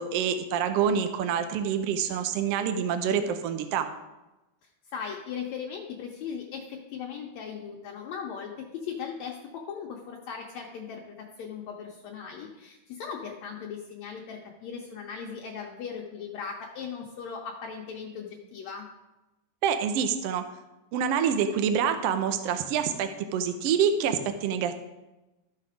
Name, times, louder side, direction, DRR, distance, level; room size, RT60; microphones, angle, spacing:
voice 1, 0.0-3.9 19.6-20.4 20.9-24.8, right 7 dB, 85° right, 8 dB, 1.3 m, -26 dB
voice 2, 4.6-18.9, left 6 dB, 70° left, 0 dB, 1.9 m, -38 dB
12.5 x 5.8 x 4.9 m, 1.0 s
omnidirectional pair, 3.7 m